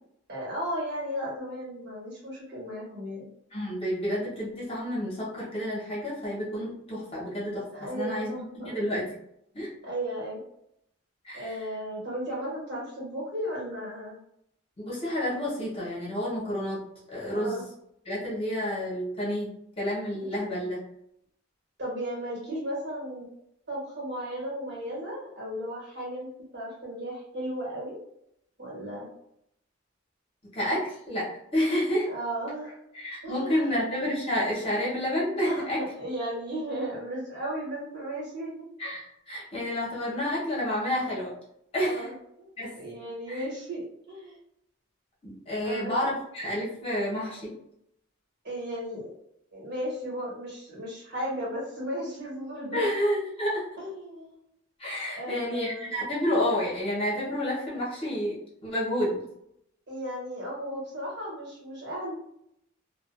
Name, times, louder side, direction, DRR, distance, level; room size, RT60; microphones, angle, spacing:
voice 1, 0.3-3.3 7.7-8.8 9.8-10.4 11.3-14.2 17.2-17.6 21.8-23.3 23.7-26.3 26.5-28.0 28.6-29.1 32.1-32.8 33.2-33.8 35.4-38.7 41.8-42.5 42.7-44.4 45.6-46.1 48.4-49.1 49.5-52.9 53.8-54.4 55.1-55.9 59.9-62.1, equal, 55° right, -5 dB, 1.3 m, -35 dB
voice 2, 3.5-9.1 9.5-9.7 11.2-11.6 14.8-16.8 17.1-17.6 18.1-19.5 19.8-20.8 30.5-32.1 32.9-35.8 38.8-41.3 41.7-42.1 42.6-42.7 43.3-43.4 45.2-47.5 52.7-53.6 54.8-58.4 58.6-59.2, equal, 30° left, -7 dB, 0.9 m, -29 dB
2.4 x 2.2 x 2.4 m, 0.76 s
head